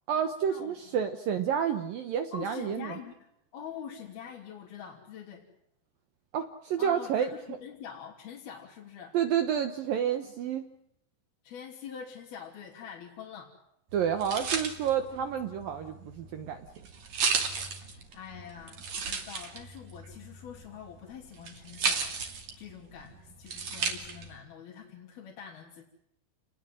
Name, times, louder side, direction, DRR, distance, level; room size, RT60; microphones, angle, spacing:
voice 1, 0.1-3.0 6.3-7.6 9.1-10.7 13.9-16.7, right 8 dB, 65° right, 8 dB, 2.3 m, -30 dB
voice 2, 2.3-3.2 3.5-5.5 6.8-9.2 11.4-13.5 17.8-25.9, left 7 dB, 55° left, -2 dB, 4.7 m, -45 dB
sound 1, 13.9-24.4, right 5 dB, 40° right, 3.5 m, -35 dB
29.5 x 20.5 x 7.8 m, 0.78 s
omnidirectional pair, 5.4 m